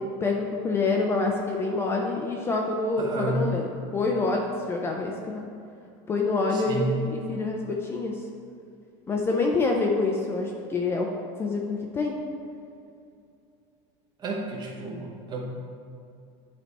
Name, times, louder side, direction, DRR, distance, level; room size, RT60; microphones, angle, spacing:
voice 1, 0.2-3.7 3.9-5.4 6.1-8.2 9.1-11.1 11.4-12.2, left 3 dB, 15° left, 0 dB, 0.4 m, -26 dB
voice 2, 3.0-3.5 6.5-7.0 14.2-15.4, right 3 dB, 30° right, 0 dB, 1.0 m, -31 dB
9.6 x 3.3 x 4.1 m, 2.5 s
supercardioid pair, 155°, 14 cm